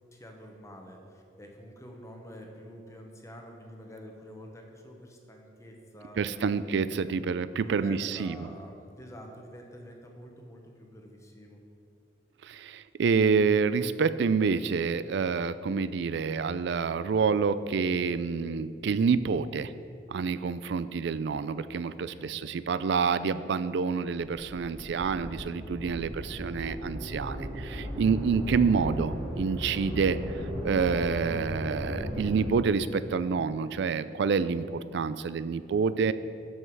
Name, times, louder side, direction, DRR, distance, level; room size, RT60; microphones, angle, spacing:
voice 1, 0.1-6.9 7.6-11.6 21.9-22.5, equal, 15° left, 2 dB, 1.0 m, -48 dB
voice 2, 6.2-8.4 12.4-19.7 20.1-30.2 30.6-36.1, right 5 dB, 70° right, 14 dB, 0.4 m, -28 dB
sound 1, 24.2-32.4, equal, 25° right, 2.3 m, -36 dB
12.0 x 5.5 x 4.7 m, 2.4 s
head